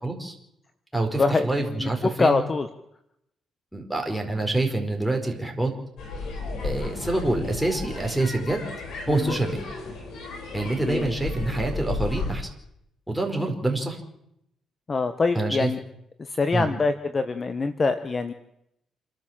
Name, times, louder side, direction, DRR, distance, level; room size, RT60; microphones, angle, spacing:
voice 1, 0.0-0.3 0.9-2.4 3.7-5.7 6.6-8.7 9.1-9.6 10.5-12.5 13.1-14.0 15.3-15.7 16.5-16.7, right 2 dB, ahead, 1 dB, 5.0 m, -26 dB
voice 2, 1.8-2.7 9.1-9.4 10.9-11.1 14.9-15.8 16.2-18.3, left 3 dB, 35° left, 10 dB, 1.2 m, -24 dB
sound 1, 6.0-12.3, left 3 dB, 75° left, 6.2 m, -33 dB
28.0 x 12.5 x 7.5 m, 0.79 s
cardioid pair, 90°, 0 cm